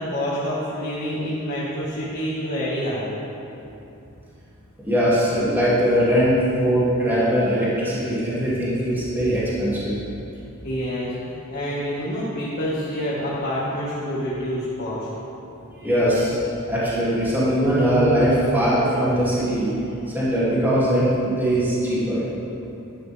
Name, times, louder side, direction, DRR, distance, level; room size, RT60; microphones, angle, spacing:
voice 1, 0.0-3.1 10.6-15.1, equal, 45° left, -9 dB, 1.8 m, -27 dB
voice 2, 4.8-6.3 6.6-10.0 15.7-16.4 16.7-19.7 20.1-22.2, equal, 10° right, -10 dB, 2.7 m, -21 dB
11.0 x 11.0 x 3.5 m, 2.8 s
head